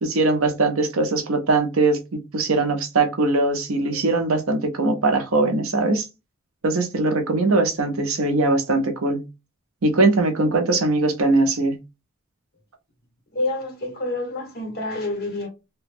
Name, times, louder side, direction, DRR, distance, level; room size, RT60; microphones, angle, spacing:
voice 1, 0.0-6.0 6.6-9.3 9.8-11.8, right 2 dB, 80° right, 0.7 m, -21 dB
voice 2, 13.3-15.5, left 2 dB, 50° left, 1.5 m, -28 dB
2.9 x 2.2 x 3.4 m
head